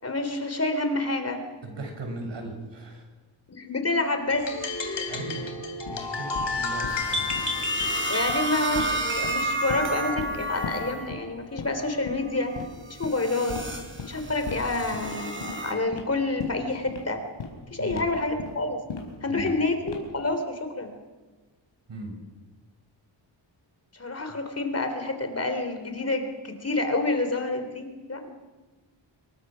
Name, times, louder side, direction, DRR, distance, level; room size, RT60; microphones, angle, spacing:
voice 1, 0.0-1.4 3.5-4.7 8.1-12.6 12.9-13.6 14.1-17.2 17.7-18.8 19.2-21.0 23.9-28.3, left 2 dB, 30° left, 7 dB, 3.4 m, -28 dB
voice 2, 1.6-3.0 5.1-7.3 17.8-18.1 19.3-19.5 21.9-22.2, right 2 dB, 70° right, 3 dB, 7.0 m, -38 dB
sound 1, 4.3-9.1, left 3 dB, 65° left, 3.4 m, -31 dB
sound 2, 5.8-5.9 6.3-6.5 6.8-7.0 7.3-7.4 7.7-7.9 8.3-8.4 8.7-8.9 9.2-9.9 10.2-10.3 10.6-10.7 11.1-11.2 11.6-11.8 12.1-12.2 12.5-12.7 13.0-13.1 13.5-13.6 14.0-14.1 14.5-14.6 14.9-15.1 15.4-15.6 15.9-16.0 16.4-16.5 16.9-17.0 17.4-17.5 17.9-18.0 18.4-18.5 18.9-19.0 19.4-19.6 19.9-20.2, left 6 dB, 90° left, 5.1 m, -36 dB
sound 3, 6.9-11.1 11.5-11.9 12.5-15.7, right 2 dB, 25° right, 4.1 m, -32 dB
27.0 x 22.5 x 6.3 m, 1.2 s
wide cardioid pair, 115°, 46 cm